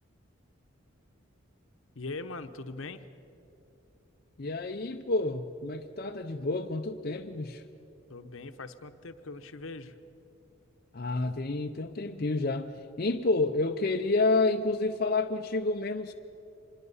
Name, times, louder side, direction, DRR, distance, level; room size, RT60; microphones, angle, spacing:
voice 1, 1.9-3.0 8.1-9.9, left 3 dB, 75° left, 9 dB, 1.0 m, -41 dB
voice 2, 4.4-7.6 10.9-16.1, left 3 dB, 45° left, 4 dB, 0.6 m, -29 dB
25.5 x 21.0 x 5.5 m, 2.8 s
head